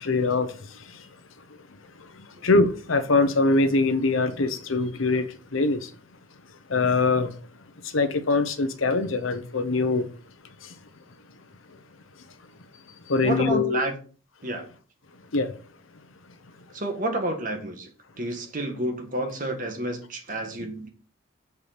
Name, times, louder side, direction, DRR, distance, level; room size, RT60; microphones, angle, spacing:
voice 1, 0.0-0.5 2.4-5.3 5.5-5.9 6.7-7.3 7.9-10.1 13.1-13.8 15.3-15.5, left 3 dB, 90° left, 0.9 m, -22 dB
voice 2, 13.2-13.9 14.4-14.7 16.7-17.9 18.2-20.9, right 1 dB, 45° right, 1.6 m, -29 dB
6.9 x 4.7 x 5.1 m
head